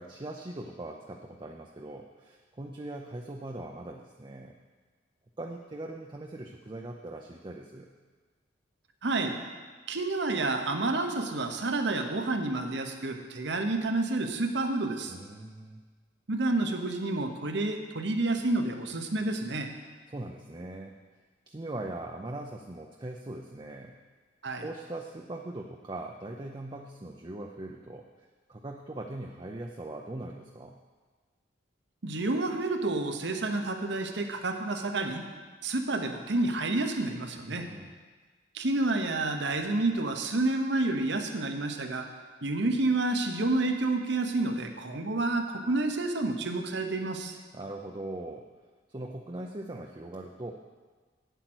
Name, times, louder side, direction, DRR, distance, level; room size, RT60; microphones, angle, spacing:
voice 1, 0.0-4.6 5.4-7.9 15.1-15.8 20.1-21.0 21.5-24.0 24.6-30.8 37.4-37.9 47.5-48.5 48.9-50.5, right 2 dB, 25° right, 2 dB, 0.5 m, -40 dB
voice 2, 9.0-9.4 9.9-15.1 16.3-19.7 24.4-24.6 32.0-35.2 35.6-37.7 38.5-42.1 42.4-47.4, right 2 dB, 65° right, 5 dB, 1.0 m, -29 dB
9.0 x 8.1 x 6.2 m, 1.4 s
head